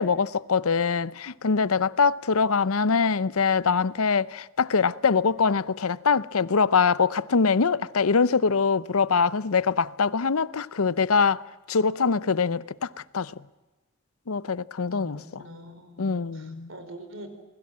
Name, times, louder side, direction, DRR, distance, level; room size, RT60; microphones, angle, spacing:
voice 1, 0.0-11.4 11.7-13.3 14.3-15.4 16.0-16.7, left 5 dB, 85° left, 0.7 m, -23 dB
voice 2, 14.9-17.3, equal, 65° right, 4.5 m, -44 dB
28.0 x 21.0 x 7.5 m
head